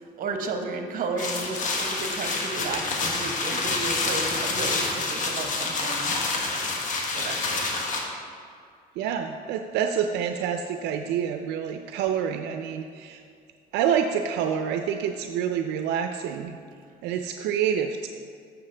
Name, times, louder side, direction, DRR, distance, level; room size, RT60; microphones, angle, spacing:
voice 1, 0.0-6.6 7.1-8.0, right 3 dB, 55° right, 5 dB, 1.0 m, -33 dB
sound 1, 1.2-8.0, left 3 dB, 50° left, 1.3 m, -28 dB
voice 2, 9.0-13.2 13.7-16.6 17.0-18.1, right 8 dB, 85° right, 6 dB, 0.4 m, -27 dB
9.4 x 6.9 x 3.3 m, 2.3 s
cardioid pair, 110°, 17 cm